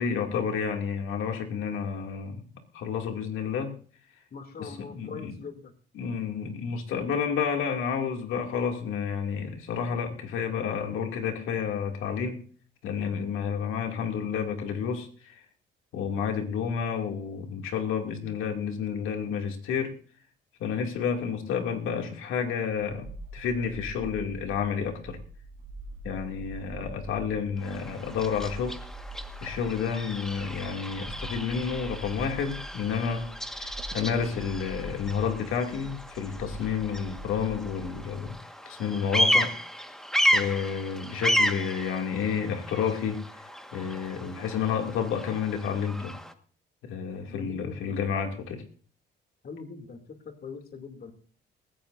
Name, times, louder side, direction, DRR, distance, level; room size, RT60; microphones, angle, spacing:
voice 1, 0.0-2.4 2.7-3.8 4.6-5.3 6.0-12.4 12.8-15.4 15.9-20.0 20.6-23.1 23.3-25.2 26.0-28.8 29.4-33.2 33.6-38.4 38.7-39.5 40.3-43.5 43.7-46.2 46.8-48.6, left 7 dB, 90° left, 3 dB, 2.5 m, -30 dB
voice 2, 4.3-5.7 47.3-48.0 49.4-51.1, left 5 dB, 50° left, 6 dB, 2.7 m, -42 dB
sound 1, 22.8-38.3, right 1 dB, 85° right, 5.2 m, -43 dB
Bird vocalization bird call bird song, 27.6-46.3, equal, ahead, 1.5 m, -32 dB
19.5 x 15.5 x 2.6 m, 0.43 s
cardioid pair, 90°, 20 cm